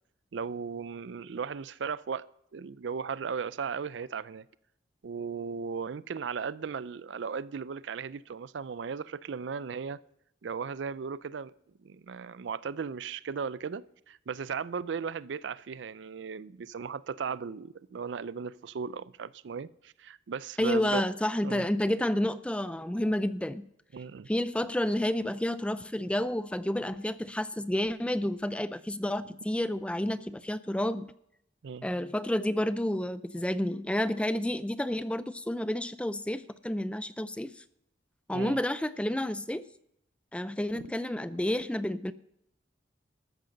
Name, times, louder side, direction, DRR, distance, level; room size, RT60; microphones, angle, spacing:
voice 1, 0.3-2.3 2.5-4.5 5.0-10.0 10.4-11.5 11.8-21.0 21.4-21.6 23.9-24.3 31.6-31.9 38.3-38.6 40.7-40.8, right 6 dB, 75° right, 0.4 m, -36 dB
voice 2, 20.6-23.7 24.3-31.1 31.8-37.5 38.3-39.6 40.3-42.1, left 1 dB, 5° left, 0.4 m, -30 dB
13.5 x 9.0 x 6.5 m
head